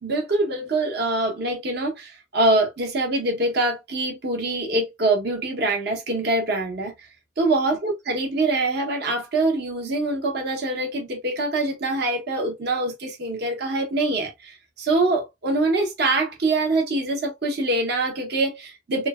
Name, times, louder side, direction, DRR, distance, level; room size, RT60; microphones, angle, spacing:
voice 1, 0.0-6.9 7.4-19.1, right 2 dB, 50° right, 0.8 m, -24 dB
3.2 x 2.1 x 2.2 m
head